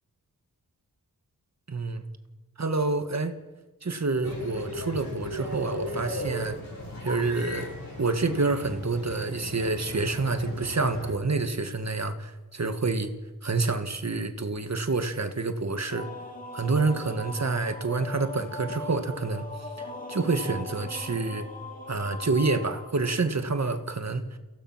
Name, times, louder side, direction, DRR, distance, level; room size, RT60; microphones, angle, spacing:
voice 1, 1.7-2.0 2.6-3.3 3.8-6.6 7.0-7.7 8.0-13.1 13.4-16.1 16.5-19.5 19.8-21.5 21.9-24.3, right 3 dB, 45° right, 8 dB, 1.7 m, -28 dB
sound 1, 4.2-11.1, left 1 dB, 65° left, 7.9 m, -37 dB
sound 2, 15.9-23.5, left 2 dB, 25° left, 2.8 m, -40 dB
30.0 x 16.0 x 6.0 m, 1.2 s
wide cardioid pair, 100°, 37 cm